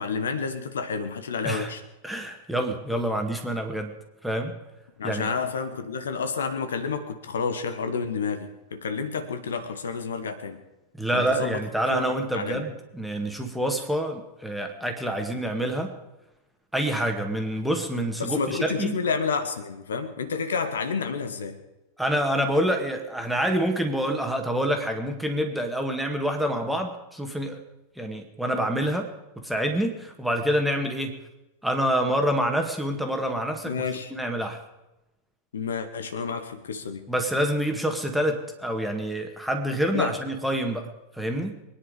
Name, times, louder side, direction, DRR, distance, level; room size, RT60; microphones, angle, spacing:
voice 1, 0.0-1.8 5.0-10.6 11.1-11.6 11.9-12.0 12.3-12.7 18.2-21.6 33.6-34.1 35.5-37.1 39.9-40.2, left 5 dB, 65° left, 9 dB, 1.3 m, -30 dB
voice 2, 2.0-4.0 4.2-4.6 5.0-5.3 10.9-16.0 16.7-19.0 22.0-27.6 28.0-31.2 31.6-33.7 34.1-34.6 37.1-40.9 41.1-41.6, right 1 dB, ahead, 4 dB, 2.1 m, -27 dB
23.5 x 10.0 x 5.2 m, 0.98 s
figure-of-eight pair, 90°, 0 cm